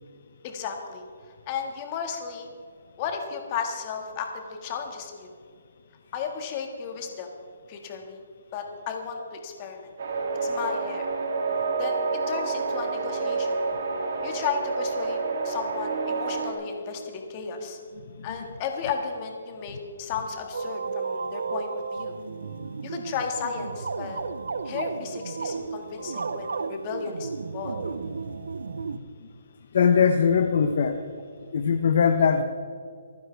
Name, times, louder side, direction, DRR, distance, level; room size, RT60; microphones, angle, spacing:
voice 1, 0.4-1.0 1.5-2.5 3.0-5.3 6.1-7.3 7.7-8.2 8.5-9.9 10.4-11.1 11.8-13.6 14.2-15.2 15.4-17.8 18.2-22.2 22.8-24.2 24.6-27.8, left 6 dB, 25° left, 3 dB, 1.8 m, -34 dB
sound 1, 10.0-16.5, right 4 dB, 55° right, 2.8 m, -28 dB
sound 2, 20.5-29.0, right 4 dB, 85° right, 0.8 m, -33 dB
voice 2, 29.7-31.0 31.5-32.4, left 6 dB, 50° left, 7 dB, 0.8 m, -20 dB
26.5 x 9.6 x 3.4 m, 2.2 s
hypercardioid pair, 170°, 0 cm